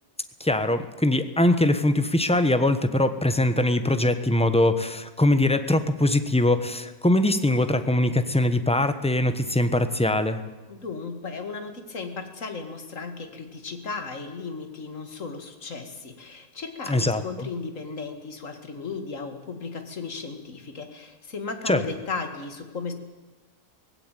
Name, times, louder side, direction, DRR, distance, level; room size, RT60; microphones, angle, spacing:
voice 1, 0.4-10.4 16.9-17.5 21.7-21.8, left 1 dB, 5° left, 10 dB, 1.0 m, -22 dB
voice 2, 10.7-22.9, left 4 dB, 55° left, 7 dB, 2.4 m, -35 dB
18.5 x 16.5 x 9.1 m, 1.3 s
omnidirectional pair, 1.6 m